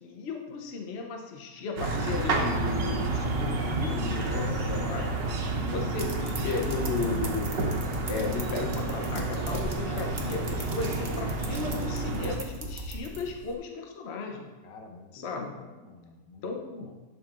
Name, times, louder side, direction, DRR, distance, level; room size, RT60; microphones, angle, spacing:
voice 1, 0.0-5.2 5.7-7.5 8.1-14.5 15.1-15.7 16.4-16.9, left 4 dB, 60° left, 2 dB, 0.6 m, -35 dB
sound 1, 1.8-12.4, right 3 dB, 85° right, 1.6 m, -30 dB
voice 2, 2.4-3.0 4.2-5.3 9.3-10.4 14.6-16.4 16.9-17.0, left 3 dB, 85° left, 4 dB, 1.5 m, -47 dB
sound 2, 5.9-13.5, right 1 dB, 40° right, 0.7 m, -38 dB
11.0 x 6.3 x 2.4 m, 1.2 s
omnidirectional pair, 1.9 m